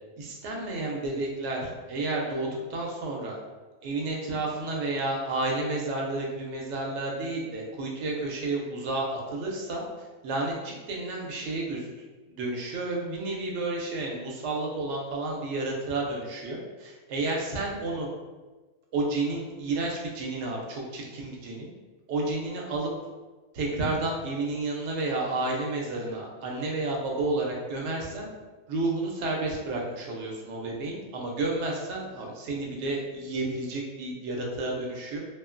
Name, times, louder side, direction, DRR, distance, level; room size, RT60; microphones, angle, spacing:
voice 1, 0.2-3.4 3.8-9.8 10.2-11.9 12.3-18.1 18.9-21.7 22.1-22.9 23.5-28.3 28.7-35.2, right 2 dB, 80° right, -1 dB, 0.9 m, -31 dB
2.7 x 2.4 x 2.5 m, 1.3 s
omnidirectional pair, 1.2 m